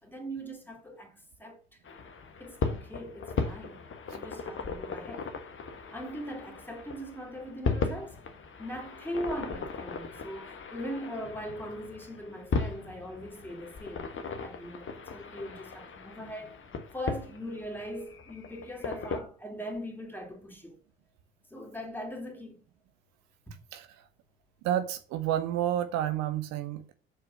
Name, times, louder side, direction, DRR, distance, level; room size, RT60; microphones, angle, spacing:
voice 1, 0.0-1.6 2.4-3.8 4.1-5.3 5.9-8.1 8.6-14.1 14.4-16.6 16.9-20.8 21.5-22.6, equal, 5° left, 3.0 m, -40 dB
sound 1, 1.8-19.2, left 4 dB, 40° left, 1.4 m, -37 dB
voice 2, 24.6-26.9, right 11 dB, 65° right, 0.8 m, -30 dB
6.5 x 4.7 x 6.4 m
figure-of-eight pair, 50°, 30 cm